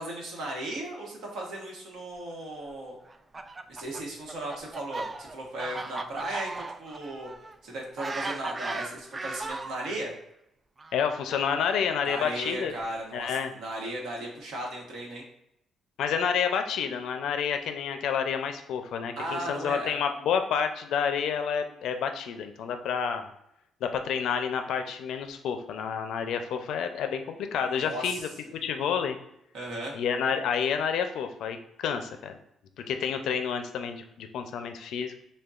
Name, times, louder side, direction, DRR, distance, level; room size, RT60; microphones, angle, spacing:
voice 1, 0.0-3.0 3.7-7.3 7.6-10.1 12.0-15.2 19.2-19.9 27.7-28.2 29.5-30.0, right 1 dB, 80° right, -1 dB, 1.1 m, -36 dB
Fowl, 3.1-10.0 10.8-12.8, right 3 dB, 30° right, 0.3 m, -38 dB
voice 2, 10.9-12.7 13.1-13.5 16.0-23.2 23.8-28.2 28.6-29.2 30.0-32.4 32.9-35.1, left 7 dB, 80° left, 7 dB, 0.4 m, -29 dB
6.4 x 2.2 x 2.4 m, 0.80 s
cardioid pair, 90°, 0 cm